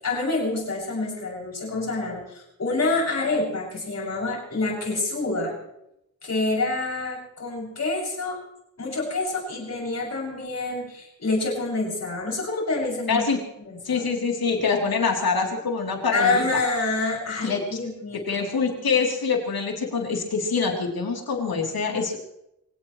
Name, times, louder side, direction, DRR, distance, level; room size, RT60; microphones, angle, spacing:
voice 1, 0.0-5.6 6.2-8.4 8.8-13.3 13.7-14.1 16.1-18.5, left 3 dB, 45° left, -4 dB, 7.1 m, -27 dB
voice 2, 13.1-13.4 13.8-16.6 17.4-17.8 18.3-22.2, left 5 dB, 80° left, 0 dB, 3.5 m, -25 dB
24.5 x 17.5 x 3.2 m, 0.82 s
wide cardioid pair, 145°, 36 cm